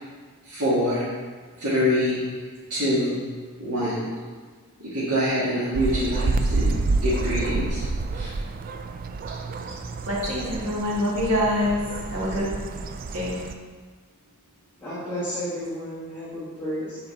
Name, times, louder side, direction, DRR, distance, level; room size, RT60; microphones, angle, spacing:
voice 1, 0.5-1.0 1.6-2.2 2.7-3.2 3.6-4.0 4.8-7.8 8.1-8.3, equal, 90° right, 1.8 m, -25 dB
sound 1, 5.7-13.5, right 3 dB, 40° right, 0.3 m, -28 dB
voice 2, 10.0-11.8 12.1-12.5 13.1-13.4, left 1 dB, 70° right, 1.9 m, -25 dB
voice 3, 14.8-17.0, equal, 10° left, 1.9 m, -32 dB
6.8 x 4.1 x 4.0 m
head